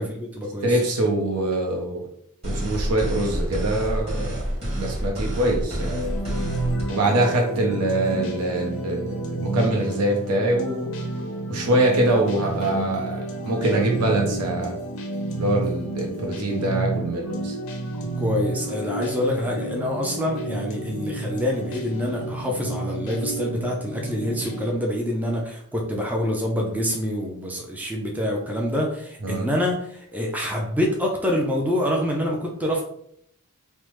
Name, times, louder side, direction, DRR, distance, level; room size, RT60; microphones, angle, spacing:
voice 1, 0.0-0.8 18.0-32.8, left 1 dB, 5° right, -1 dB, 0.3 m, -26 dB
voice 2, 0.6-2.1 2.4-4.4 4.8-6.1 6.9-10.9 11.5-14.8 15.3-17.6 29.2-29.5, right 1 dB, 85° right, 0 dB, 0.6 m, -24 dB
sound 1, 2.4-6.8, equal, 25° right, 1.4 m, -28 dB
sound 2, 5.8-24.7, right 2 dB, 65° left, 0.5 m, -30 dB
3.2 x 2.0 x 3.0 m, 0.69 s
head